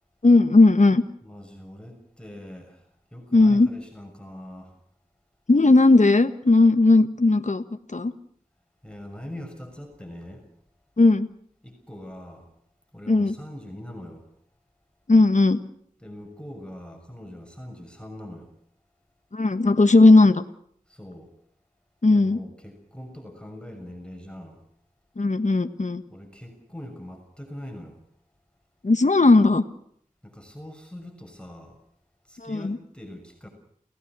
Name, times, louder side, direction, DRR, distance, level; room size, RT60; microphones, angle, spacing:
voice 1, 0.2-1.0 3.3-3.7 5.5-7.6 7.9-8.1 11.0-11.3 13.1-13.3 15.1-15.6 19.3-20.4 22.0-22.4 25.2-26.0 28.8-29.6 32.4-32.8, left 2 dB, 55° left, 9 dB, 1.5 m, -17 dB
voice 2, 1.2-4.8 8.8-10.5 11.6-12.5 12.9-14.3 16.0-18.5 20.9-21.3 22.1-24.6 26.1-28.0 30.2-31.8 32.2-33.5, left 1 dB, 5° left, 3 dB, 6.6 m, -42 dB
29.5 x 18.0 x 6.2 m, 0.66 s
wide cardioid pair, 50°, 14 cm